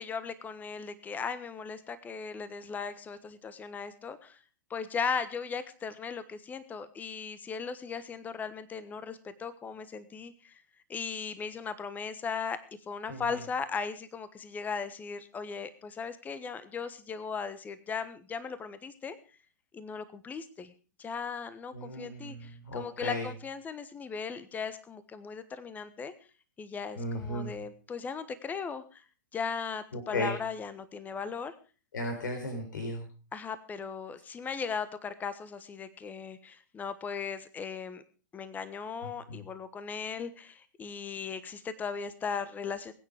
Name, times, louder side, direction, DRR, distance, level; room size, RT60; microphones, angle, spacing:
voice 1, 0.0-4.4 4.7-10.6 10.9-12.6 12.9-19.2 19.7-20.7 21.0-26.1 26.6-29.0 29.3-31.5 33.3-38.0 38.3-42.9, left 5 dB, 15° left, 14 dB, 1.3 m, -37 dB
voice 2, 21.7-23.2 27.0-27.5 30.1-30.3 31.9-33.0, left 1 dB, 70° left, 4 dB, 4.0 m, -35 dB
21.5 x 9.3 x 5.0 m, 0.37 s
figure-of-eight pair, 110°, 11 cm